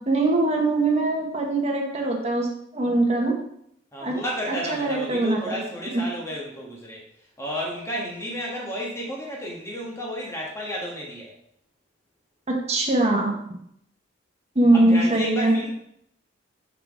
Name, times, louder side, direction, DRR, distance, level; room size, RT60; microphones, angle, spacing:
voice 1, 0.1-2.5 2.7-3.3 4.0-4.2 4.7-5.6 12.7-13.3 14.5-15.7, right 2 dB, 35° right, 0 dB, 1.3 m, -21 dB
voice 2, 3.9-7.0 7.4-11.3 14.7-15.7, equal, 15° left, -3 dB, 1.4 m, -32 dB
5.8 x 5.8 x 3.6 m, 0.73 s
head